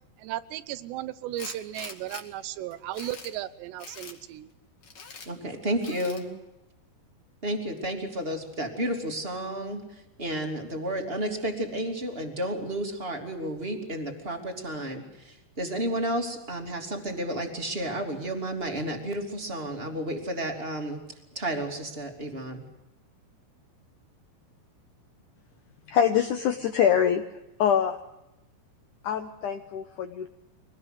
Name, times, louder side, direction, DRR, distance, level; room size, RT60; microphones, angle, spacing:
voice 1, 0.2-4.5, right 14 dB, 85° right, 14 dB, 3.1 m, -35 dB
Tools, 1.4-2.2 2.7-3.3 3.8-4.2 4.8-5.3 5.8-6.2, left 5 dB, 40° left, 2.5 m, -43 dB
voice 2, 5.3-6.3 7.4-9.8 10.2-21.0 21.3-22.6, right 1 dB, 15° right, 4 dB, 2.4 m, -31 dB
voice 3, 25.9-27.2 27.6-28.0 29.0-30.3, left 8 dB, 75° left, 6 dB, 1.9 m, -24 dB
24.0 x 19.0 x 8.0 m, 0.90 s
omnidirectional pair, 4.8 m